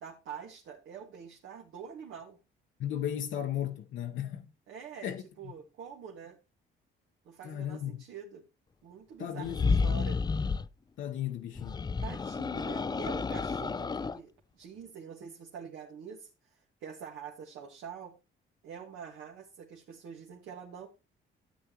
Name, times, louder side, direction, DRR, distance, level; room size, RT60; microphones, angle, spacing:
voice 1, 0.0-2.4 4.7-6.4 7.3-8.4 8.8-10.2 12.0-18.1 18.6-20.9, right 7 dB, 85° right, 1.7 m, -46 dB
voice 2, 2.8-4.5 5.0-5.5 7.4-8.0 9.2-10.0 11.0-11.8, left 10 dB, 75° left, 1.0 m, -35 dB
sound 1, 9.4-10.7 11.5-14.2, left 4 dB, 20° left, 0.4 m, -31 dB
13.0 x 8.3 x 3.0 m
cardioid pair, 90°, 20 cm